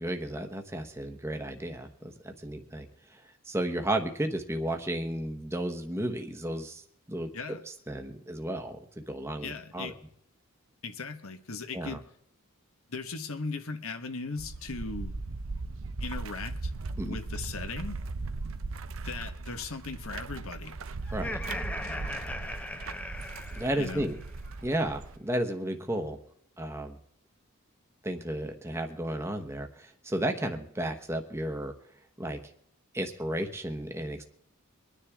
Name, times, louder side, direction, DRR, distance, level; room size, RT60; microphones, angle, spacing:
voice 1, 0.0-7.3 7.7-9.9 11.7-12.0 17.0-17.2 21.1-21.4 23.5-24.2 24.6-26.2 26.6-27.0 28.0-31.7 32.2-32.4 32.9-34.2, right 1 dB, 10° right, 4 dB, 1.1 m, -33 dB
voice 2, 9.4-9.9 10.8-12.0 12.9-15.1 16.0-16.7 17.0-18.0 19.0-20.7 23.8-24.1, left 4 dB, 70° left, 8 dB, 1.3 m, -38 dB
sound 1, 14.4-25.2, right 3 dB, 65° right, 0.7 m, -38 dB
Laughter, 21.1-24.3, left 1 dB, 5° left, 0.7 m, -38 dB
24.5 x 9.9 x 3.6 m, 0.69 s
head